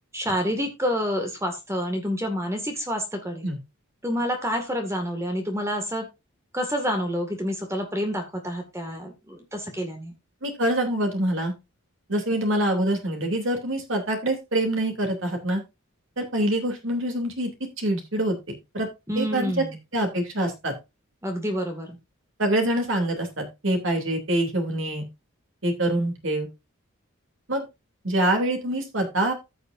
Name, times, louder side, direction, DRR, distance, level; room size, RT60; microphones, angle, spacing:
voice 1, 0.1-3.5 4.0-6.1 6.5-10.1 19.1-19.8 21.2-22.0, equal, 15° right, 4 dB, 2.0 m, -28 dB
voice 2, 10.4-11.5 12.1-15.6 16.2-17.5 17.8-18.9 19.2-19.6 19.9-20.7 22.4-25.1 25.6-26.5 27.5-27.6 28.0-29.3, right 1 dB, 65° right, 4 dB, 3.0 m, -25 dB
15.0 x 6.7 x 2.6 m, 0.24 s
head